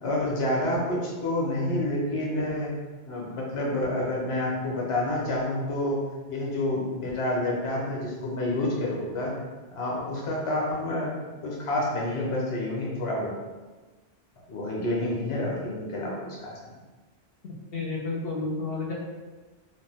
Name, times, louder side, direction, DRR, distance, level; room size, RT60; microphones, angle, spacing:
voice 1, 0.0-2.7 3.1-6.0 6.3-9.3 9.7-11.1 11.4-13.3 14.5-16.6, left 1 dB, 35° left, -4 dB, 0.6 m, -28 dB
voice 2, 17.7-18.9, left 3 dB, 70° left, -2 dB, 0.8 m, -30 dB
2.5 x 2.1 x 3.3 m, 1.3 s
omnidirectional pair, 1.1 m